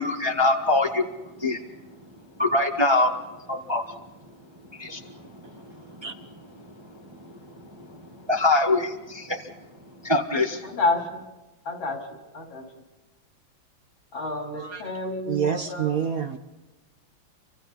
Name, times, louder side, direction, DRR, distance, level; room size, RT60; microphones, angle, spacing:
voice 1, 0.0-10.8, left 2 dB, 15° right, 3 dB, 1.2 m, -27 dB
voice 2, 10.6-11.2 11.6-12.7 14.1-15.9, left 2 dB, 75° left, 1 dB, 4.6 m, -29 dB
voice 3, 15.3-16.4, right 8 dB, 50° right, 6 dB, 1.3 m, -27 dB
30.0 x 25.0 x 4.2 m, 1.1 s
omnidirectional pair, 2.2 m